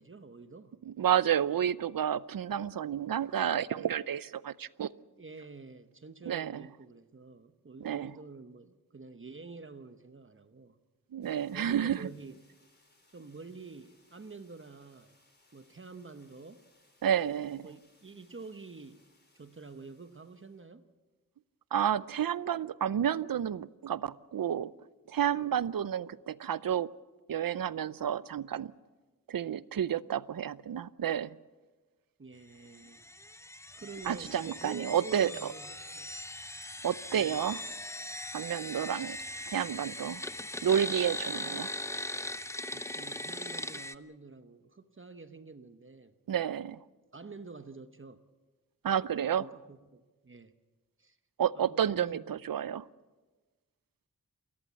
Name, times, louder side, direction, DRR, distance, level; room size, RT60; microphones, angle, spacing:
voice 1, 0.0-0.8 5.2-10.8 11.5-12.4 13.1-15.2 15.5-16.6 17.6-19.1 19.3-20.9 32.2-33.0 33.7-36.1 37.1-37.4 41.3-41.7 42.7-46.1 47.1-48.2 49.2-50.5 51.0-51.2 51.5-52.3, right 4 dB, 40° right, 1.0 m, -48 dB
voice 2, 0.9-4.9 6.3-6.6 7.8-8.1 11.1-12.1 17.0-17.7 21.7-24.7 25.1-26.9 27.3-28.7 29.3-31.3 34.1-35.3 36.8-37.6 38.3-39.2 39.5-40.2 40.6-41.7 46.3-46.8 48.8-49.4 51.4-52.9, right 9 dB, 90° right, 0.6 m, -30 dB
sound 1, 11.2-20.7, left 2 dB, 30° left, 4.5 m, -68 dB
sound 2, 32.7-43.9, left 1 dB, 10° left, 0.7 m, -40 dB
28.5 x 14.5 x 8.3 m
wide cardioid pair, 105°, 33 cm